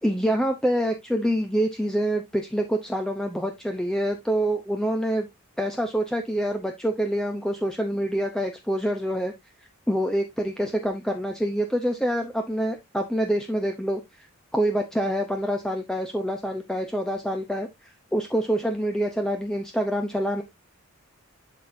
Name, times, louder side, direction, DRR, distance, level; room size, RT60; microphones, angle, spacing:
voice 1, 0.0-5.3 5.6-9.3 9.9-14.3 14.5-20.4, equal, 5° left, 0.7 m, -26 dB
11.5 x 4.4 x 2.7 m
head